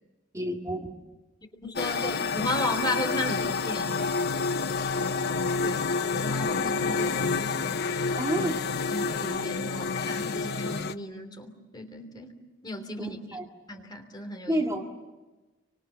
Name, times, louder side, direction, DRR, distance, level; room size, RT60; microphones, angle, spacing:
voice 1, 0.3-0.9 8.2-8.7 13.0-13.4 14.5-14.8, equal, 15° right, 1 dB, 2.4 m, -30 dB
voice 2, 1.6-3.9 5.6-7.7 8.9-12.4 12.6-13.2 13.7-14.6, left 1 dB, 20° left, 5 dB, 3.0 m, -35 dB
sound 1, 1.8-10.9, left 4 dB, 55° left, 0.8 m, -28 dB
30.0 x 25.5 x 7.2 m, 1.1 s
head